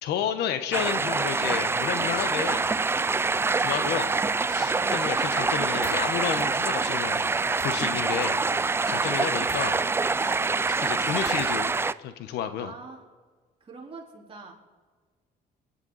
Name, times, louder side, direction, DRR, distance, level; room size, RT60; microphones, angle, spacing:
voice 1, 0.0-2.7 3.6-4.2 4.5-7.3 7.6-8.4 8.9-9.8 10.1-10.4 10.8-12.7, left 9 dB, 80° left, 10 dB, 1.2 m, -31 dB
sound 1, 0.7-11.9, right 4 dB, 15° right, 0.4 m, -25 dB
sound 2, 5.8-6.0 7.5-7.7 9.4-9.7 11.2-11.5, left 3 dB, 55° left, 4.8 m, -43 dB
voice 2, 10.2-10.5 12.6-13.0 13.6-14.6, right 3 dB, 35° right, -2 dB, 4.1 m, -45 dB
27.0 x 11.5 x 4.2 m, 1.4 s
cardioid pair, 110°, 17 cm